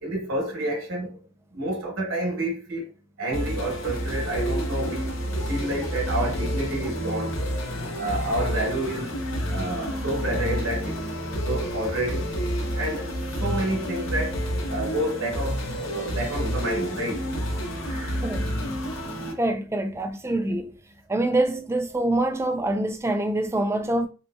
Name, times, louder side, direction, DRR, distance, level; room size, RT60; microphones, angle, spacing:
voice 1, 0.0-1.2 1.5-2.9 3.2-5.2 5.5-7.4 8.0-9.1 9.5-11.0 11.4-12.3 12.7-17.2 17.8-18.2, right 1 dB, 70° right, 0.9 m, -29 dB
sound 1, 3.3-19.3, equal, 70° left, 0.8 m, -29 dB
voice 2, 19.4-20.7 21.1-24.1, right 1 dB, 15° right, 0.3 m, -25 dB
3.3 x 2.8 x 2.2 m
head